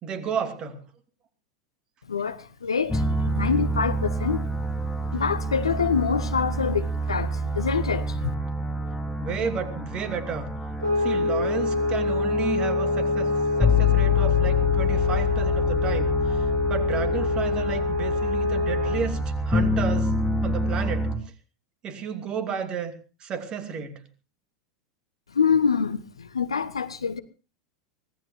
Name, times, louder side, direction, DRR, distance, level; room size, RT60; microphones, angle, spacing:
voice 1, 0.0-0.8 9.2-10.5 11.0-13.3 13.6-20.1 20.4-21.1 21.8-22.9 23.2-24.0, right 6 dB, 35° right, 2.6 m, -32 dB
voice 2, 2.1-4.4 5.1-8.3 25.3-27.2, left 6 dB, 80° left, 1.2 m, -26 dB
sound 1, 2.9-21.2, left 2 dB, 5° left, 4.1 m, -27 dB
sound 2, 10.8-19.2, left 2 dB, 90° right, 1.9 m, -26 dB
24.5 x 18.0 x 2.8 m
figure-of-eight pair, 85°, 3 cm